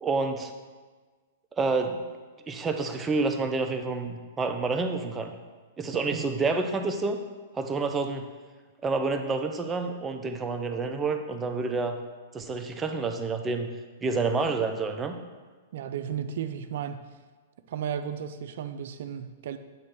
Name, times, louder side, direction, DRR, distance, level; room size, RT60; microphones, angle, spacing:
voice 1, 0.0-0.5 1.5-2.1 2.5-5.3 5.8-7.2 7.5-8.3 8.8-12.0 12.3-13.7 14.0-15.2, right 3 dB, 15° right, 5 dB, 0.6 m, -28 dB
voice 2, 5.9-6.3 15.7-17.0 17.7-19.6, right 8 dB, 65° right, 10 dB, 0.5 m, -34 dB
8.9 x 3.2 x 5.8 m, 1.4 s
hypercardioid pair, 135°, 0 cm